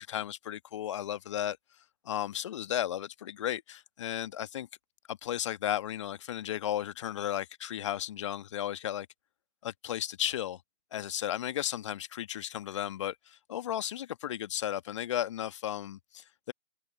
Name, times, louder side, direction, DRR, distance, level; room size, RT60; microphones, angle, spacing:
voice 1, 0.0-1.6 2.0-4.7 5.1-9.1 9.6-10.6 10.9-16.5, left 11 dB, 25° left, 1.5 m, -34 dB
figure-of-eight pair, 140°, 35 cm